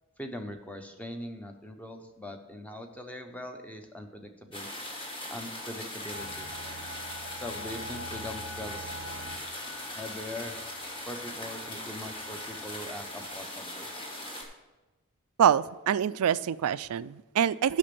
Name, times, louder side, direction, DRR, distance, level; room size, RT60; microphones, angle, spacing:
voice 1, 0.2-4.7 5.3-6.5 7.3-8.9 10.0-10.6 11.1-13.9, left 1 dB, 5° left, 5 dB, 0.7 m, -41 dB
sound 1, 4.5-14.4, left 1 dB, 25° left, 1.6 m, -40 dB
sound 2, 6.1-13.4, left 1 dB, 55° left, 1.4 m, -45 dB
voice 2, 15.4-17.8, right 9 dB, 80° right, 17 dB, 0.3 m, -25 dB
8.5 x 6.0 x 6.9 m, 1.1 s
head